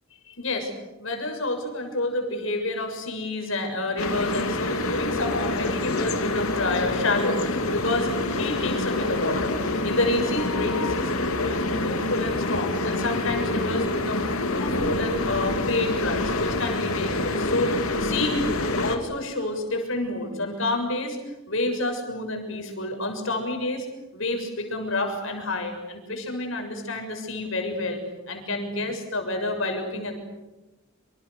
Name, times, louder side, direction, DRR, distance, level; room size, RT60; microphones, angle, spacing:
voice 1, 0.3-0.7 1.0-14.3 14.5-18.4 18.8-21.2 21.5-23.9 24.1-28.0 28.3-30.1, left 2 dB, 65° left, 4 dB, 7.0 m, -29 dB
sound 1, 4.0-19.0, left 2 dB, 90° left, 3.0 m, -26 dB
27.5 x 27.5 x 6.8 m, 1.1 s
head